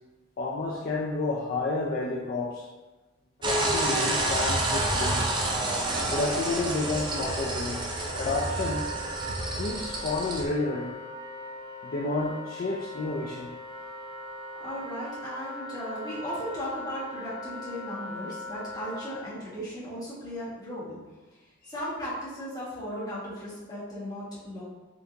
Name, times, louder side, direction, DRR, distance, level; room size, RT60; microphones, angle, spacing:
voice 1, 0.4-2.6 3.4-5.3 6.1-7.8 8.1-8.9 9.6-10.9 11.8-13.5 21.6-21.7, left 3 dB, 45° left, -2 dB, 0.3 m, -30 dB
sound 1, 3.4-10.4, right 2 dB, 25° right, 0.5 m, -29 dB
Wind instrument woodwind instrument, 8.0-19.2, equal, 80° right, 1.1 m, -40 dB
voice 2, 14.6-21.0 21.6-24.6, equal, 20° left, -9 dB, 1.4 m, -36 dB
3.8 x 3.4 x 2.7 m, 1.2 s
head